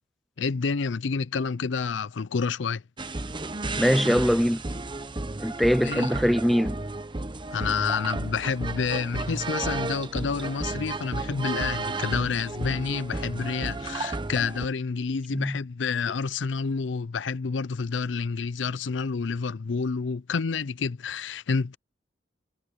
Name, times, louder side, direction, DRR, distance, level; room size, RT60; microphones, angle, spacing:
voice 1, 0.4-2.8 5.8-6.1 7.5-21.8, left 5 dB, 90° left, 0.5 m, -29 dB
sound 1, 3.0-14.7, right 2 dB, 25° right, 1.0 m, -33 dB
voice 2, 3.8-4.6 5.4-6.8 15.3-15.6, equal, ahead, 0.3 m, -22 dB
head